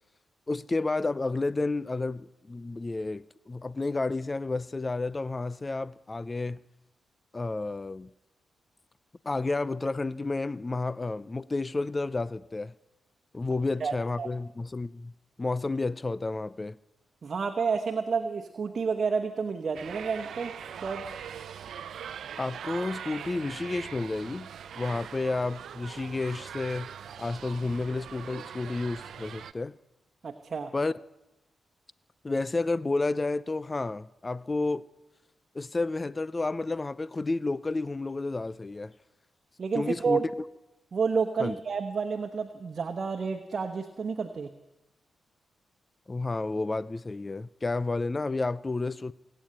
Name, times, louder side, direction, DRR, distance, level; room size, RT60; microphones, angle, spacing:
voice 1, 0.5-6.6 7.3-8.1 9.2-12.7 13.3-15.1 15.4-16.8 22.4-24.5 24.8-26.9 27.2-29.8 30.7-30.9 32.2-34.8 35.5-38.9 39.7-40.3 41.4-41.6 46.1-49.1, left 3 dB, 30° left, 0.4 m, -31 dB
voice 2, 13.8-14.3 17.2-20.5 20.8-21.1 30.2-30.7 39.6-40.2 40.9-44.5, right 5 dB, 55° right, 1.1 m, -30 dB
sound 1, 19.7-29.5, right 8 dB, 80° right, 0.6 m, -41 dB
18.5 x 9.0 x 8.8 m
cardioid pair, 60°, 0 cm